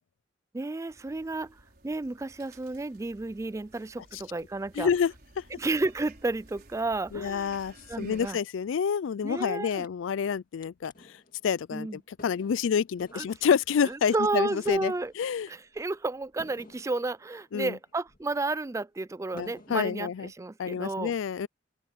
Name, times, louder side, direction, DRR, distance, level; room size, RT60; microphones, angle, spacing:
voice 1, 0.5-4.9 5.5-7.6 7.9-8.4 9.2-9.9 11.7-12.0 13.1-13.3 13.8-15.1 15.5-21.1, right 2 dB, 15° right, 0.3 m, -32 dB
sound 1, 0.9-8.3, right 2 dB, 50° right, 5.4 m, -55 dB
voice 2, 4.8-5.4 7.1-10.9 11.4-15.5 17.5-17.7 19.3-20.3 20.6-21.5, left 7 dB, 80° left, 0.4 m, -28 dB
sound 2, 9.4-9.5 9.7-10.3 10.6-18.5 18.9-19.0 19.4-20.2, left 2 dB, 45° left, 2.1 m, -55 dB
open air
head